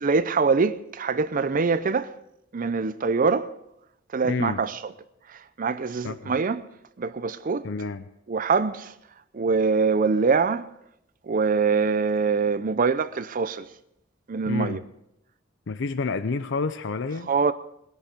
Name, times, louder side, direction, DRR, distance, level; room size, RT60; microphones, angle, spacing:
voice 1, 0.0-2.1 2.5-3.5 4.1-4.9 5.3-6.7 7.0-7.7 8.3-8.9 9.3-10.7 11.2-13.7 14.3-14.8 17.3-17.5, right 4 dB, 45° right, 0.5 m, -24 dB
voice 2, 4.3-4.6 6.0-6.3 7.6-8.0 14.5-14.8 15.7-17.3, left 4 dB, 65° left, 0.5 m, -29 dB
20.5 x 10.5 x 5.1 m
head